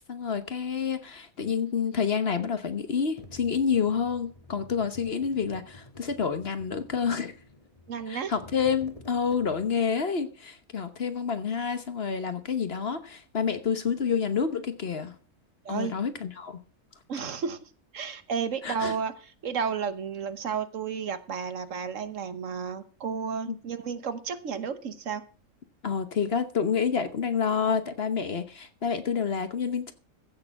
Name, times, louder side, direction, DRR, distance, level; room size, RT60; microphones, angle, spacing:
voice 1, 0.1-7.3 8.1-15.1 15.7-16.6 18.6-18.9 23.5-23.6 25.8-29.9, left 6 dB, 50° left, 1.3 m, -28 dB
sound 1, 3.2-9.9, left 2 dB, 25° left, 1.6 m, -50 dB
voice 2, 7.9-8.3 15.6-15.9 17.1-17.7 17.9-25.2, right 6 dB, 65° right, 1.3 m, -32 dB
15.0 x 6.7 x 5.9 m
omnidirectional pair, 1.5 m